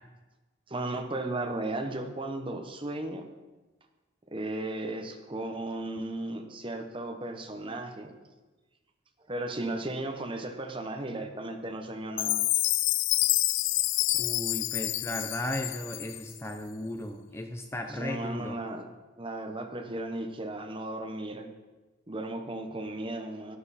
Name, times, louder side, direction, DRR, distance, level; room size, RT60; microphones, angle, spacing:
voice 1, 0.7-3.2 4.3-8.2 9.3-12.4 17.9-18.9 19.2-21.5 22.1-23.6, right 2 dB, 25° right, 5 dB, 1.0 m, -35 dB
Chime, 12.2-16.4, left 17 dB, 65° left, 0.4 m, -28 dB
voice 2, 14.2-18.5, left 1 dB, 15° left, 5 dB, 0.6 m, -35 dB
12.5 x 10.5 x 4.2 m, 1.2 s
head